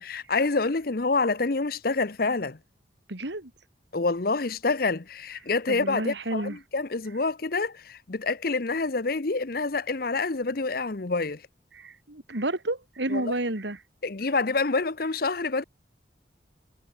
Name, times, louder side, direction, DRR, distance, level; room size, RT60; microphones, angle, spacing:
voice 1, 0.0-2.6 3.9-11.4 13.1-13.3 14.0-15.6, left 3 dB, 50° left, 0.8 m, -27 dB
voice 2, 3.1-3.5 5.7-6.6 11.7-13.8, right 1 dB, 65° right, 2.6 m, -31 dB
head